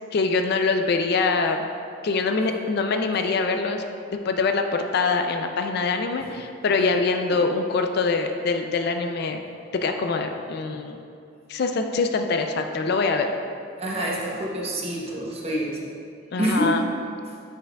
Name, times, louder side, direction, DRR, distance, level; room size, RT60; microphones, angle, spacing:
voice 1, 0.1-1.7 2.0-3.8 4.2-9.4 9.7-11.0 11.5-13.3 16.3-16.8, left 4 dB, 55° left, 5 dB, 0.4 m, -24 dB
voice 2, 13.8-15.8 16.4-16.8, right 1 dB, 30° right, -3 dB, 0.9 m, -27 dB
7.9 x 6.1 x 2.3 m, 2.5 s
head